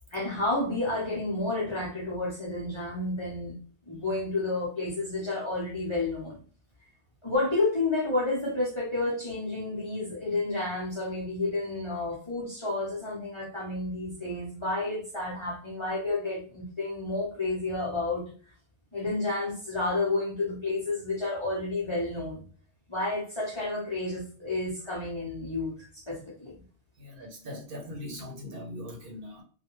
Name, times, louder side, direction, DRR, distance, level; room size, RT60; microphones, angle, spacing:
voice 1, 0.1-3.6 3.9-6.4 7.2-18.2 18.9-22.4 22.9-26.5, left 2 dB, 30° left, 0.7 m, -30 dB
voice 2, 27.0-29.4, left 1 dB, 60° right, 0.9 m, -40 dB
2.3 x 2.2 x 2.9 m
omnidirectional pair, 1.1 m